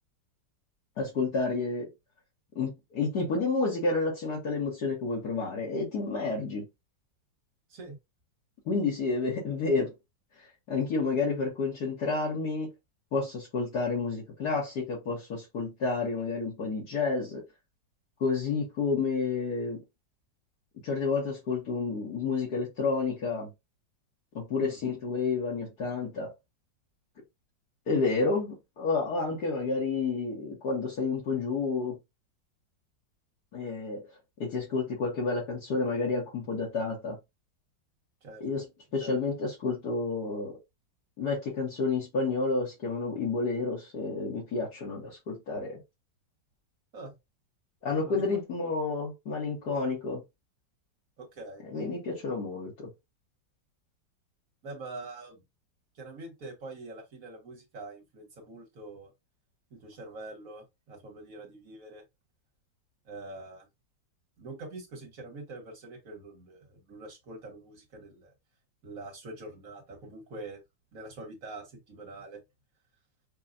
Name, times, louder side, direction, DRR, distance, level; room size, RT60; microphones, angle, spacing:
voice 1, 1.0-1.9 2.6-6.6 8.7-9.9 10.7-12.7 13.1-17.4 18.2-19.8 20.8-23.5 24.4-26.3 27.9-32.0 33.5-34.0 34.4-37.2 38.4-38.6 38.9-40.5 41.2-45.8 47.8-50.2 51.7-52.9, left 4 dB, 65° left, 1.8 m, -30 dB
voice 2, 51.2-51.6 54.6-55.4 55.9-59.1 59.7-62.0 63.0-63.7 64.4-68.3 68.8-70.6 70.9-72.4, right 2 dB, 50° right, 1.6 m, -44 dB
5.6 x 2.3 x 2.4 m
omnidirectional pair, 2.0 m